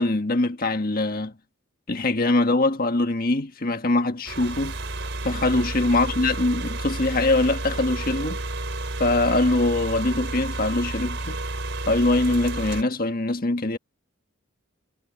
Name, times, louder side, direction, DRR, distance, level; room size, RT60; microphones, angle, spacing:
voice 1, 0.0-1.3 1.9-4.7 5.2-8.4 9.0-11.4 11.9-13.8, left 2 dB, 45° left, 1.6 m, -23 dB
sound 1, 4.3-12.8, right 2 dB, 60° right, 4.5 m, -31 dB
head